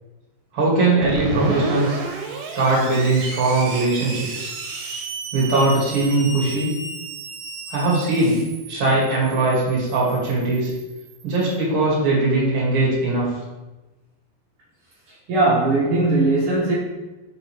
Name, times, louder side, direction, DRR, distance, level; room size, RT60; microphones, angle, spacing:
voice 1, 0.5-2.0 2.5-4.5 5.3-6.7 7.7-8.4 8.7-10.7 11.2-13.3, right 2 dB, 45° right, -5 dB, 1.8 m, -20 dB
Screech, 1.0-11.5, right 4 dB, 80° right, 2.5 m, -33 dB
voice 2, 15.3-16.7, right 2 dB, 60° right, -9 dB, 1.3 m, -19 dB
6.2 x 5.2 x 3.0 m, 1.1 s
omnidirectional pair, 4.7 m